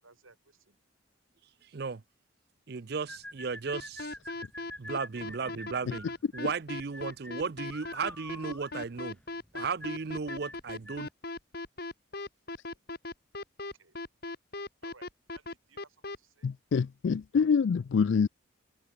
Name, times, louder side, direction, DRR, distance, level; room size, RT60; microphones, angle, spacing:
voice 1, 0.0-0.8 5.1-5.7 13.6-14.0 14.8-16.5, right 3 dB, 85° right, 6.3 m, -59 dB
voice 2, 1.6-2.0 2.7-4.2 4.8-6.1 6.3-9.2 9.5-11.1, right 5 dB, 50° right, 0.5 m, -35 dB
sound 1, 3.1-11.1, left 1 dB, 5° left, 4.3 m, -46 dB
sound 2, 3.7-16.2, left 2 dB, 50° left, 2.2 m, -38 dB
voice 3, 16.4-18.3, left 6 dB, 65° left, 0.3 m, -26 dB
head